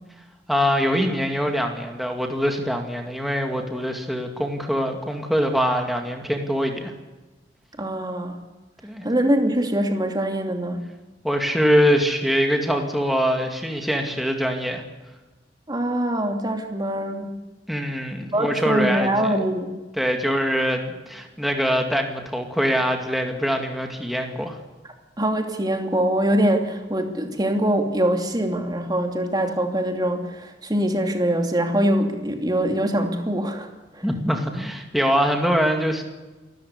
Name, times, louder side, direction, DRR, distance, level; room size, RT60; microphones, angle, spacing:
voice 1, 0.5-6.9 8.8-9.0 11.2-14.8 17.7-19.1 20.0-24.6 34.0-36.0, equal, ahead, 3 dB, 2.2 m, -23 dB
voice 2, 7.8-8.4 9.0-10.8 15.7-17.4 18.3-19.8 25.2-33.7 33.9-34.0, right 1 dB, 25° right, 4 dB, 2.8 m, -23 dB
27.5 x 14.0 x 8.3 m, 1.2 s
head